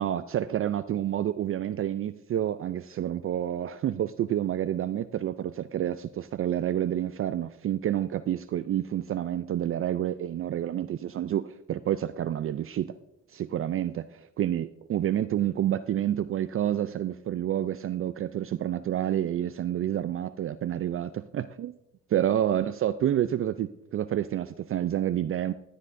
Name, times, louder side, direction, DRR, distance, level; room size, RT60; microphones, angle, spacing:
voice 1, 0.0-12.9 13.3-21.8 22.1-25.5, right 11 dB, 45° right, 12 dB, 0.4 m, -29 dB
15.0 x 9.7 x 2.6 m, 0.88 s
cardioid pair, 90°, 30 cm